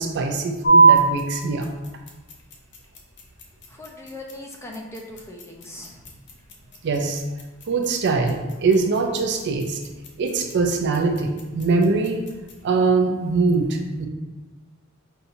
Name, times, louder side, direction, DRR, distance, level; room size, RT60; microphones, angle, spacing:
voice 1, 0.0-1.7 6.8-7.2 7.7-9.8 10.2-12.2 12.6-14.1, right 4 dB, 55° right, 4 dB, 0.4 m, -22 dB
sound 1, 0.6-12.7, right 4 dB, 55° left, 0.7 m, -25 dB
voice 2, 3.7-6.1, left 1 dB, 15° left, -1 dB, 0.5 m, -39 dB
5.6 x 2.7 x 2.6 m, 1.2 s
head